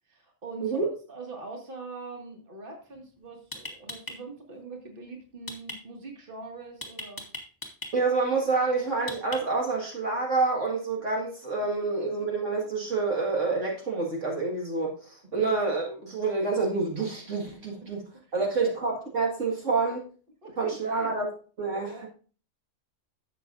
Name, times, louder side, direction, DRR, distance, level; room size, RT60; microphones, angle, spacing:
voice 1, 0.1-7.2 18.2-18.7 20.4-21.1 21.8-22.1, right 3 dB, 40° right, 1 dB, 2.2 m, -43 dB
sound 1, 2.9-3.0 3.5-4.2 5.5-5.8 6.8-7.9 9.1-9.7, left 1 dB, 15° left, 1.7 m, -37 dB
voice 2, 7.9-18.0 18.3-20.1 20.6-21.3 21.6-22.1, right 3 dB, 65° right, -1 dB, 2.2 m, -28 dB
12.0 x 8.0 x 2.6 m, 0.39 s
omnidirectional pair, 1.4 m